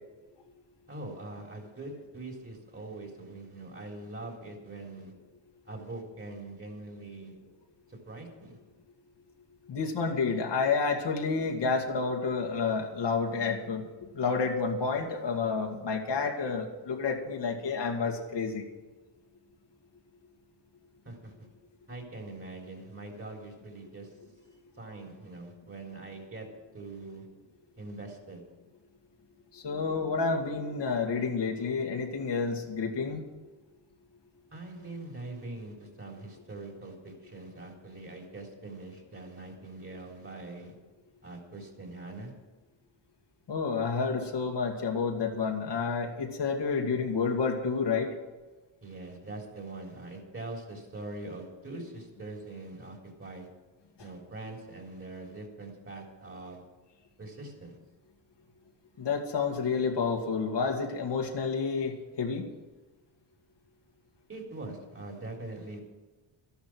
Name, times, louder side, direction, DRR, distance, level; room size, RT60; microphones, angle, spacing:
voice 1, 0.9-5.1 5.7-7.3 7.9-8.5 21.0-21.3 21.9-24.1 24.8-26.5 26.7-27.2 27.8-28.4 34.5-40.7 41.2-42.3 48.8-53.5 54.0-56.6 57.2-57.8 64.3-65.8, right 2 dB, 25° right, 1 dB, 3.8 m, -43 dB
voice 2, 9.7-13.8 14.1-18.7 29.5-33.2 43.5-48.1 59.0-62.4, left 5 dB, 55° left, 2 dB, 2.1 m, -30 dB
12.5 x 11.5 x 6.1 m, 1.2 s
cardioid pair, 95°, 49 cm